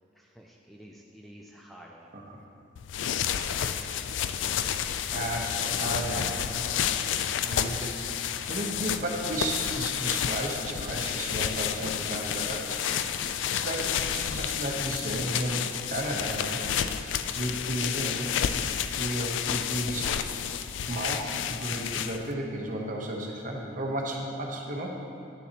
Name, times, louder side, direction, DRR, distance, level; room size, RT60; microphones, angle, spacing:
voice 1, 0.1-2.1 9.0-9.4, equal, ahead, -1 dB, 0.3 m, -49 dB
voice 2, 2.1-2.4 5.1-7.1 7.4-8.1 8.5-12.8 13.5-16.6 17.3-18.3 18.9-20.2 20.8-25.0, right 1 dB, 45° right, 0 dB, 0.9 m, -33 dB
sound 1, 2.8-22.3, left 9 dB, 75° left, 0.3 m, -30 dB
9.9 x 7.0 x 2.9 m, 2.8 s
head